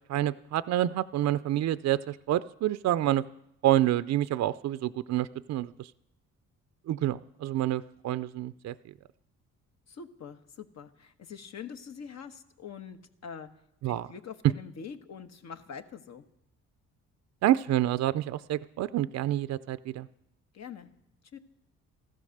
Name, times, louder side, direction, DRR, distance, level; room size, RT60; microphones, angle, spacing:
voice 1, 0.1-3.2 3.6-5.9 6.9-8.7 13.8-14.1 17.4-20.1, right 13 dB, 65° right, 14 dB, 0.5 m, -28 dB
voice 2, 9.9-13.5 13.8-16.2 20.5-20.9 21.3-21.4, left 7 dB, 60° left, 7 dB, 1.4 m, -44 dB
15.0 x 13.0 x 6.5 m, 0.82 s
cardioid pair, 90°, 30 cm